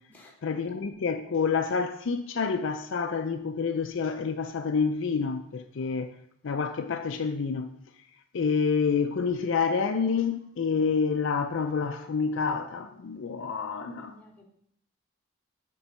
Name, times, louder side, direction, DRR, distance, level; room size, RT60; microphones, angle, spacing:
voice 1, 0.4-6.1 6.4-7.7 8.3-14.1, left 5 dB, 55° left, 0.4 m, -28 dB
voice 2, 13.6-14.4, left 1 dB, 10° left, 1.3 m, -51 dB
7.2 x 4.6 x 5.2 m
head